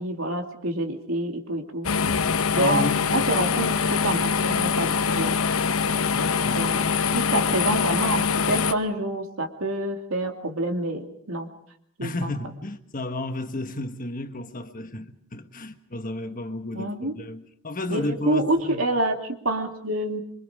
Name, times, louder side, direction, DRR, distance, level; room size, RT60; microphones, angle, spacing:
voice 1, 0.0-1.9 2.5-5.4 6.5-11.5 12.0-12.3 16.7-17.1 17.9-20.2, right 1 dB, 80° right, 2.7 m, -27 dB
sound 1, 1.8-8.7, left 5 dB, 85° left, 0.9 m, -23 dB
voice 2, 2.5-3.0 6.1-6.7 12.0-18.8, left 2 dB, 40° left, 1.5 m, -32 dB
27.0 x 24.0 x 5.0 m
head